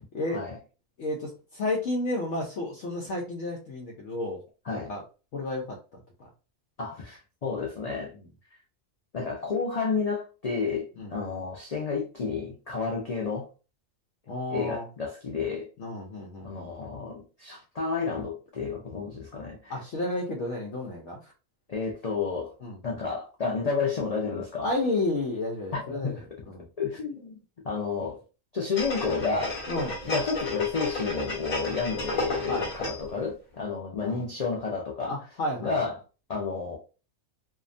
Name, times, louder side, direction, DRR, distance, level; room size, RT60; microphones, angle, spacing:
voice 1, 1.0-4.4 4.7-5.0 5.3-6.0 11.0-11.1 14.3-14.9 15.8-16.7 19.7-21.3 22.6-22.8 24.6-26.2 26.5-26.7 29.7-30.0 32.5-32.7 34.0-34.2 35.1-35.8, left 2 dB, 65° left, 0.8 m, -31 dB
voice 2, 6.8-8.1 9.1-13.5 14.5-15.7 16.4-19.8 21.7-22.5 22.8-24.7 25.7-26.2 26.8-27.4 27.6-28.2 28.5-29.6 30.0-35.2 35.6-36.0 36.3-36.8, left 5 dB, 90° left, 0.3 m, -31 dB
sound 1, 28.8-33.2 33.5-33.6, left 1 dB, 40° left, 0.9 m, -33 dB
2.7 x 2.2 x 2.5 m
omnidirectional pair, 1.4 m